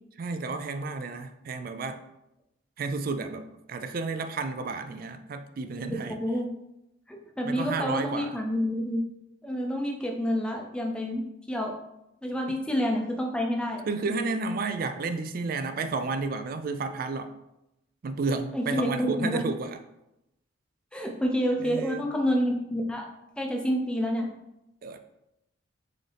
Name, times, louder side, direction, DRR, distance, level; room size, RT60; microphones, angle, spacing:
voice 1, 0.2-2.0 2.8-6.2 7.4-8.4 12.5-12.6 13.9-17.3 18.0-19.8 21.6-22.0 24.8-25.0, right 4 dB, 45° right, 9 dB, 0.3 m, -32 dB
voice 2, 5.8-6.5 7.1-9.0 9.4-11.7 12.2-13.8 14.1-14.4 18.5-19.4 20.9-23.1 23.4-24.3, equal, 5° left, 1 dB, 0.5 m, -28 dB
4.0 x 3.8 x 3.4 m, 0.88 s
head